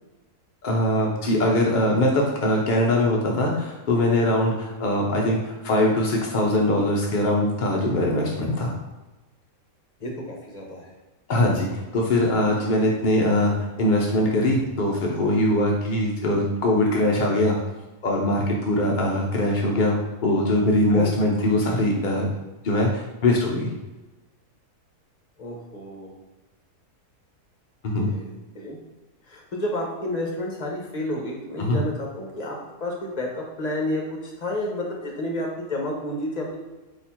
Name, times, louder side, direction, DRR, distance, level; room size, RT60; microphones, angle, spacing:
voice 1, 0.6-8.7 11.3-17.6 18.0-22.3 22.6-23.7 27.8-28.1 31.6-31.8, left 1 dB, 70° left, -1 dB, 0.4 m, -22 dB
voice 2, 10.0-10.9 20.9-21.1 25.4-26.2 28.1-28.3 28.5-28.8 29.3-34.0 34.4-36.6, left 1 dB, 30° left, -1 dB, 0.8 m, -30 dB
4.2 x 2.9 x 4.2 m, 1.1 s
omnidirectional pair, 1.7 m